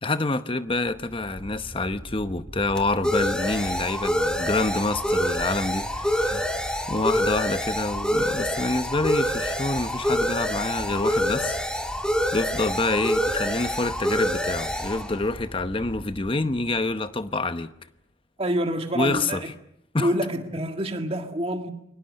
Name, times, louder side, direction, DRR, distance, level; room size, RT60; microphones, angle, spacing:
voice 1, 0.0-6.5 6.9-11.6 12.3-17.7 18.9-19.4 19.9-20.1, left 2 dB, 25° left, 0.9 m, -27 dB
sound 1, 1.1-16.5, equal, 5° left, 1.7 m, -27 dB
voice 2, 18.4-19.5 20.0-21.7, equal, 30° right, 1.9 m, -27 dB
28.5 x 23.0 x 6.5 m
head